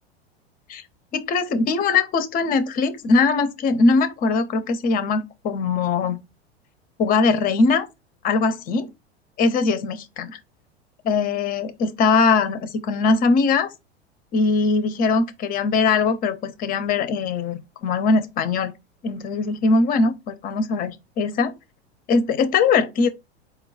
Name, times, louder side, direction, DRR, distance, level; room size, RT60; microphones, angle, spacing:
voice 1, 1.1-6.2 7.0-7.9 8.2-8.9 9.4-10.4 11.0-13.7 14.3-18.7 19.0-21.6 22.1-23.1, left 4 dB, 25° left, 0.6 m, -21 dB
4.5 x 2.2 x 3.5 m
figure-of-eight pair, 85°, 32 cm